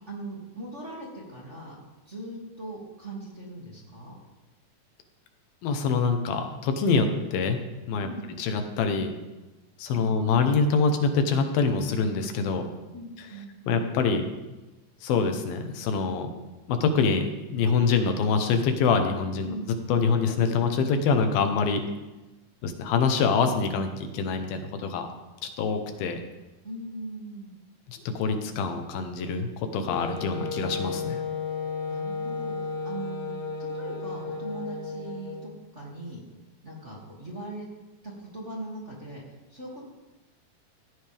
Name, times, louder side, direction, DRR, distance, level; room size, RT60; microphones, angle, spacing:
voice 1, 0.1-1.7 2.1-4.2 8.0-8.3 9.9-10.4 12.9-13.9 19.4-19.7 21.7-21.9 26.6-27.5 31.9-36.2 36.6-37.7 38.0-39.8, right 1 dB, 20° right, -5 dB, 2.4 m, -40 dB
voice 2, 5.6-7.6 7.9-8.1 8.4-9.1 9.8-12.6 13.7-14.3 15.0-16.3 16.7-19.5 19.9-21.8 22.6-25.1 25.4-26.2 27.9-31.2, left 5 dB, 80° left, 6 dB, 3.0 m, -25 dB
Wind instrument woodwind instrument, 29.9-35.6, left 4 dB, 50° left, 1.1 m, -33 dB
16.5 x 14.5 x 3.5 m, 1.1 s
omnidirectional pair, 4.2 m